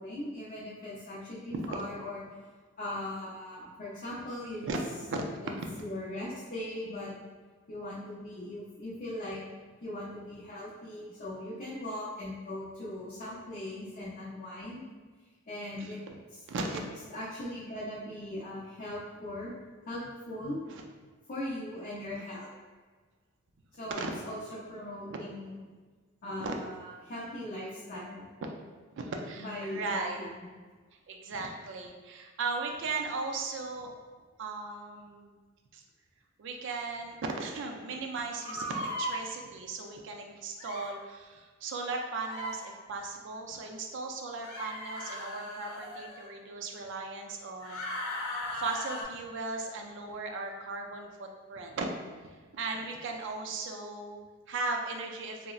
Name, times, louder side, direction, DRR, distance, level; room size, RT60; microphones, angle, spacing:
voice 1, 0.0-2.2 2.8-4.7 5.4-5.5 5.8-7.1 7.7-9.4 9.8-14.9 15.5-16.0 16.3-16.4 16.7-16.8 17.1-19.5 19.8-20.6 21.3-22.5 23.7-25.5 26.2-28.2 29.4-30.3, left 1 dB, 40° left, -8 dB, 0.5 m, -39 dB
voice 2, 15.8-16.1 16.5-16.8 20.7-20.8 23.8-24.1 26.4-26.5 28.4-28.5 28.9-30.2 31.1-33.9 34.4-35.3 35.7-35.8 36.4-51.9 52.5-55.5, right 3 dB, 60° right, 2 dB, 0.4 m, -37 dB
sound 1, 38.4-39.2 40.6-40.9 42.2-42.6 44.4-46.3 47.6-49.0, left 1 dB, 85° left, 0.7 m, -37 dB
3.9 x 2.0 x 2.3 m, 1.4 s
head